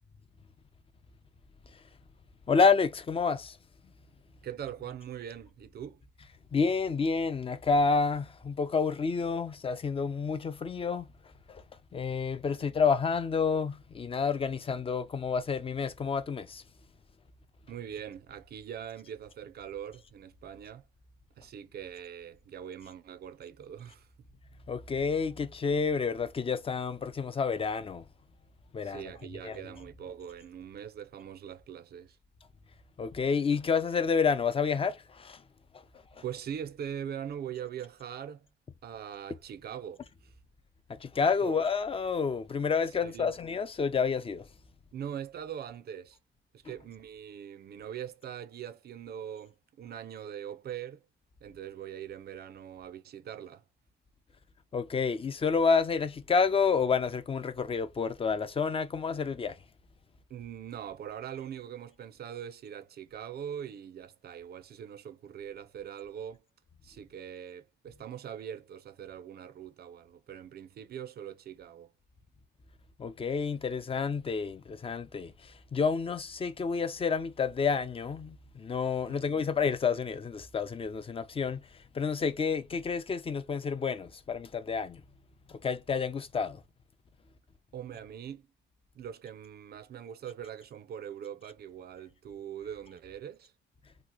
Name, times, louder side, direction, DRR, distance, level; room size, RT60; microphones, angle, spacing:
voice 1, 2.5-3.6 6.5-11.1 11.5-11.6 11.9-16.6 24.7-28.1 28.7-29.1 29.4-29.6 33.0-35.4 36.1-36.2 40.9-44.5 54.7-59.6 73.0-85.0 85.5-86.6, left 5 dB, 30° left, 0.5 m, -29 dB
voice 2, 4.4-6.0 12.5-12.7 17.7-20.9 21.4-24.1 28.8-32.2 36.2-38.5 38.8-40.3 41.4-41.5 43.0-43.3 44.9-46.2 46.5-51.0 51.4-53.6 60.3-66.4 66.8-71.9 79.1-79.3 87.7-88.5 88.9-93.5, right 9 dB, 55° right, 0.5 m, -42 dB
2.9 x 2.4 x 3.8 m
cardioid pair, 90°, 20 cm